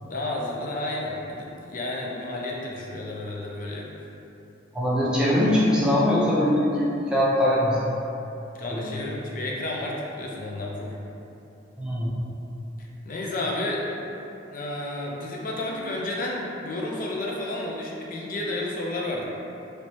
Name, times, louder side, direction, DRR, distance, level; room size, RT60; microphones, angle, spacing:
voice 1, 0.0-3.9 8.5-11.0 12.8-13.8 14.5-19.3, left 2 dB, 45° left, -3 dB, 0.5 m, -31 dB
voice 2, 4.7-7.8 8.7-8.9 11.8-12.1, left 1 dB, 5° right, -8 dB, 0.5 m, -22 dB
3.1 x 3.0 x 2.9 m, 2.9 s
head